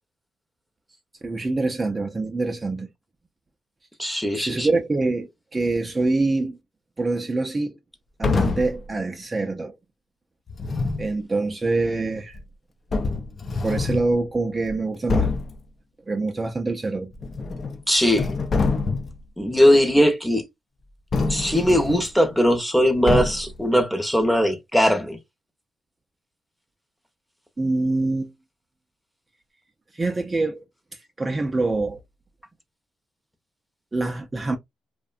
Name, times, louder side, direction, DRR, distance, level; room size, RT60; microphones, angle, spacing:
voice 1, 1.2-2.9 4.4-6.6 7.0-7.7 8.2-9.8 11.0-12.4 13.6-15.3 16.1-17.1 27.6-28.3 29.9-30.6 30.9-32.0 33.9-34.6, right 3 dB, 25° right, 0.4 m, -25 dB
voice 2, 4.0-4.7 17.9-18.3 19.4-20.4 21.3-25.2, equal, 5° left, 0.7 m, -20 dB
sound 1, 8.2-8.8 10.5-11.1 12.3-12.4 12.9-14.1 14.6-14.7 15.1-15.6 17.1-17.8 18.1-19.2 21.1-22.1 23.1-23.6, left 3 dB, 40° left, 0.4 m, -25 dB
2.6 x 2.1 x 2.4 m
cardioid pair, 90°, 0 cm